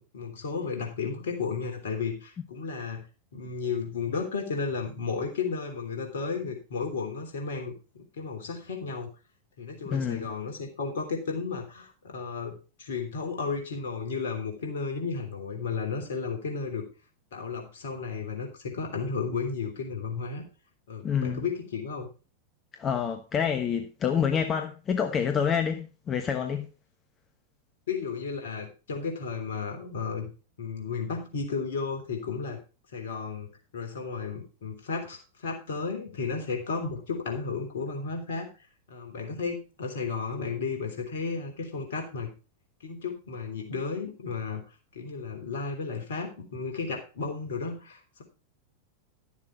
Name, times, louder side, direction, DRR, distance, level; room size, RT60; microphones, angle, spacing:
voice 1, 0.0-3.0 3.3-9.1 9.6-16.8 17.3-20.4 20.9-22.1 27.9-30.3 30.6-32.6 32.9-38.5 38.9-42.3 42.8-44.6 44.9-48.2, left 5 dB, 60° left, 3.3 m, -33 dB
voice 2, 9.8-10.3 21.0-21.4 22.8-26.7, left 7 dB, 25° left, 1.1 m, -27 dB
12.0 x 7.3 x 4.5 m
figure-of-eight pair, 90°, 0 cm